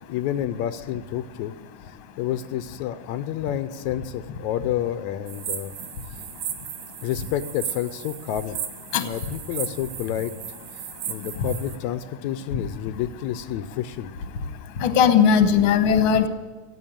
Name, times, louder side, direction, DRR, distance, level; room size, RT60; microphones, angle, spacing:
voice 1, 0.1-1.5 2.2-5.7 7.0-8.6 9.0-10.3 11.1-14.1, left 11 dB, 80° left, 11 dB, 1.9 m, -29 dB
sound 1, 5.3-11.8, right 9 dB, 90° right, 2.6 m, -35 dB
voice 2, 14.8-16.3, left 7 dB, 55° left, 9 dB, 1.6 m, -18 dB
15.5 x 8.6 x 7.4 m, 1.4 s
omnidirectional pair, 3.4 m